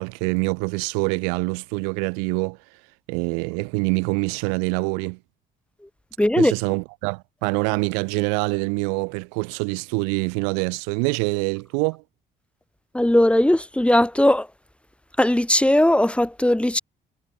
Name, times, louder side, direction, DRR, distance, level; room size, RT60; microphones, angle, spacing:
voice 1, 0.0-2.6 3.1-5.2 6.4-12.0, right 40 dB or more, 90° right, 4.1 m, -25 dB
voice 2, 6.2-6.5 12.9-14.5 15.2-16.8, left 1 dB, 5° left, 1.7 m, -18 dB
hypercardioid pair, 55°, 20 cm